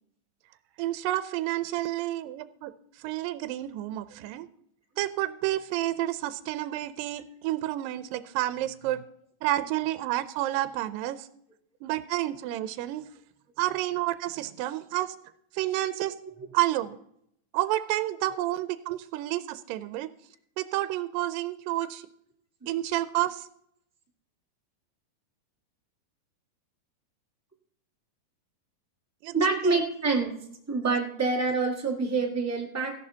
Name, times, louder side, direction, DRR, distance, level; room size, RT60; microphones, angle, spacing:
voice 1, 0.8-2.7 3.0-4.5 5.0-9.0 9.4-11.3 11.8-13.0 13.6-15.2 15.5-16.2 16.5-17.0 17.5-20.1 20.6-22.1 22.7-23.5 29.2-29.8, right 15 dB, 85° right, 12 dB, 2.2 m, -30 dB
voice 2, 29.3-30.3 30.7-32.9, right 3 dB, 10° right, -1 dB, 0.7 m, -26 dB
15.0 x 11.0 x 2.8 m, 0.71 s
omnidirectional pair, 4.0 m